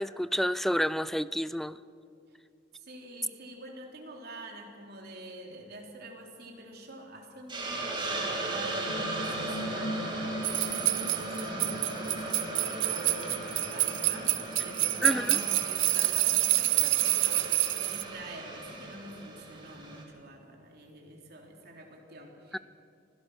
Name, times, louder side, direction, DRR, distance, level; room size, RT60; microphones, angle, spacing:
voice 1, 0.0-1.8 15.0-15.4 22.5-22.6, equal, ahead, 17 dB, 0.4 m, -29 dB
voice 2, 2.7-22.6, right 1 dB, 55° right, 1 dB, 3.5 m, -46 dB
Hiss, 7.5-20.0, right 2 dB, 25° right, 3.0 m, -37 dB
sound 1, 8.9-15.7, equal, 70° left, 1.5 m, -41 dB
sound 2, 10.4-18.0, right 17 dB, 80° right, 0.8 m, -27 dB
25.0 x 16.5 x 6.3 m, 2.7 s
head